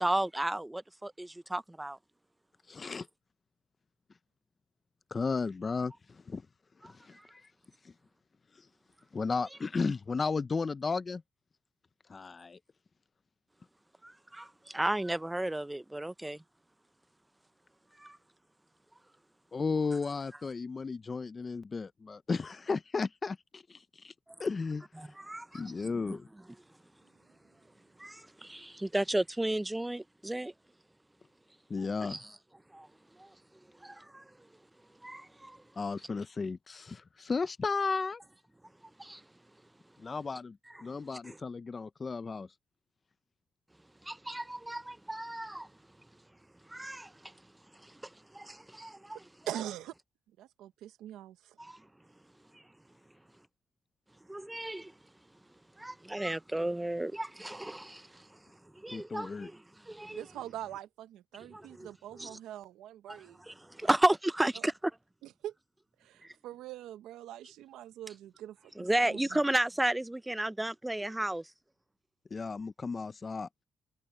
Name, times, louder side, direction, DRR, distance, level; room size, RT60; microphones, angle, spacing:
voice 1, 0.0-2.0 14.0-16.4 18.0-18.2 25.0-26.2 28.0-30.5 32.1-32.2 32.7-32.9 33.2-33.3 33.8-34.2 35.0-35.6 39.0-39.2 41.2-41.4 44.0-45.7 46.7-47.3 47.8-49.2 51.6-51.8 52.5-52.6 54.3-54.9 55.8-58.3 58.7-59.6 59.8-60.2 61.5-61.9 62.2-62.4 63.1-64.9 66.2-66.3 68.8-71.5, right 1 dB, 10° right, 0.8 m, -33 dB
voice 2, 2.7-3.1 5.1-6.4 6.8-7.4 7.8-7.9 8.6-8.7 9.1-11.2 12.1-12.6 19.5-24.1 24.4-24.9 25.5-26.3 31.7-32.2 35.8-38.2 40.0-42.5 58.9-59.5 72.3-73.5, left 4 dB, 35° left, 0.6 m, -34 dB
voice 3, 49.5-49.9 50.4-51.6 60.1-63.4 63.8-63.9 64.6-64.7 65.2-65.5 66.0-69.4, right 12 dB, 85° right, 1.1 m, -43 dB
cardioid pair, 90°, 0 cm